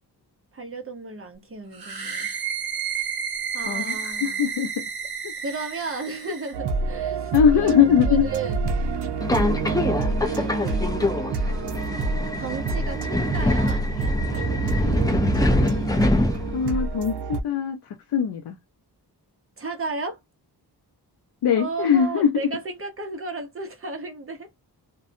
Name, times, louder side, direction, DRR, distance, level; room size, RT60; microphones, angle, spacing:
voice 1, 0.5-2.3 2.9-3.0 3.5-4.4 5.4-8.7 9.6-10.7 11.4-15.0 19.6-20.2 21.5-24.5, right 3 dB, 35° right, 0.8 m, -35 dB
sound 1, 1.7-6.6, right 7 dB, 60° right, 1.0 m, -31 dB
voice 2, 3.6-4.9 5.2-5.3 7.3-8.3 16.5-18.6 21.4-22.5, left 8 dB, 80° left, 0.5 m, -21 dB
sound 2, 6.5-17.4, right 4 dB, 85° right, 0.5 m, -27 dB
Subway metro underground, 9.2-16.8, left 1 dB, 10° left, 0.4 m, -25 dB
2.6 x 2.2 x 2.5 m
wide cardioid pair, 145°, 40 cm